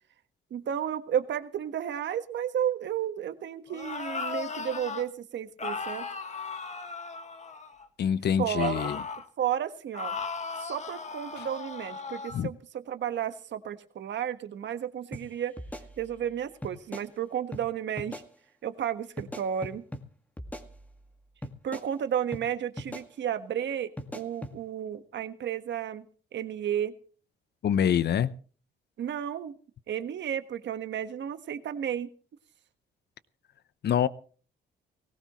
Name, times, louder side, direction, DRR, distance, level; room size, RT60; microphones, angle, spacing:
voice 1, 0.5-6.1 8.4-8.9 9.4-10.1 10.6-12.6 12.9-15.5 16.0-18.2 18.6-19.8 21.6-26.0 26.3-26.9 29.0-29.5 29.9-32.1, right 9 dB, 65° right, 1.5 m, -32 dB
sound 1, 3.7-5.1 5.6-7.9 8.6-9.3 9.9-12.4, left 4 dB, 35° left, 1.9 m, -36 dB
voice 2, 8.0-9.0 11.4-11.5 12.3-12.5 27.6-28.3 33.8-34.1, left 9 dB, 55° left, 0.9 m, -25 dB
sound 2, 15.1-15.2 15.6-16.3 16.6-17.1 17.5-17.6 18.0-18.3 19.2-20.0 20.4-21.1 21.4-21.9 22.3-22.4 22.8-23.1 24.0-24.5, left 1 dB, 5° left, 2.1 m, -40 dB
19.5 x 17.5 x 3.1 m
cardioid pair, 90°, 20 cm